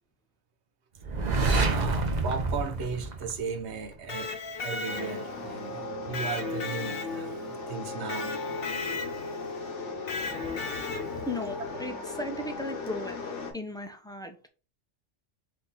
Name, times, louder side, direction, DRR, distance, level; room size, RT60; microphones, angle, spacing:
sound 1, 1.0-3.9, right 3 dB, 45° right, 0.8 m, -27 dB
voice 1, 1.6-4.3 4.6-8.4 11.7-11.8, right 5 dB, 75° right, 1.1 m, -36 dB
Electric guitar, 3.9-5.4 6.1-7.5 8.1-9.4 10.1-11.3, left 4 dB, 60° left, 1.0 m, -35 dB
sound 2, 4.9-13.5, left 3 dB, 85° left, 1.4 m, -37 dB
voice 2, 11.3-13.2 13.5-14.4, left 1 dB, 5° left, 0.3 m, -36 dB
4.4 x 2.9 x 3.9 m
omnidirectional pair, 1.2 m